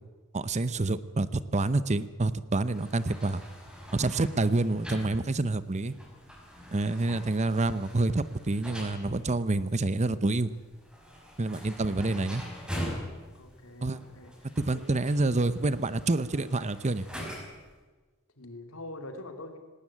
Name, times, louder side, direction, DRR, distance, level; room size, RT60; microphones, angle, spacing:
voice 1, 0.3-3.4 3.9-5.9 6.7-10.5 11.4-12.4 13.8-14.0 14.6-17.1, right 2 dB, 30° right, 15 dB, 0.7 m, -27 dB
sound 1, 2.6-17.7, equal, 5° right, 5.7 m, -43 dB
voice 2, 13.4-14.8 18.4-19.6, left 2 dB, 75° left, 6 dB, 2.8 m, -44 dB
18.5 x 18.5 x 8.7 m, 1.3 s
head